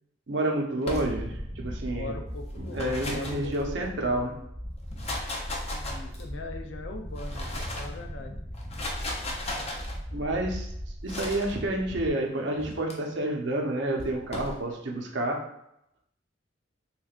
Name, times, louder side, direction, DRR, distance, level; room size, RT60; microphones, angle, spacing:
voice 1, 0.3-2.2 2.7-4.3 10.1-10.7 11.0-15.4, right 1 dB, 75° right, 1 dB, 0.7 m, -29 dB
sound 1, 0.8-1.5 2.5-4.0 4.8-6.4 7.0-8.0 8.5-9.9 11.1-11.5 12.6-12.9 14.0-14.6, left 1 dB, 35° left, 0.6 m, -36 dB
sound 2, 0.9-12.1, equal, 5° right, 0.8 m, -38 dB
voice 2, 1.8-3.5 5.7-8.4, left 3 dB, 75° left, 4 dB, 0.5 m, -41 dB
3.7 x 3.1 x 2.4 m, 0.78 s
head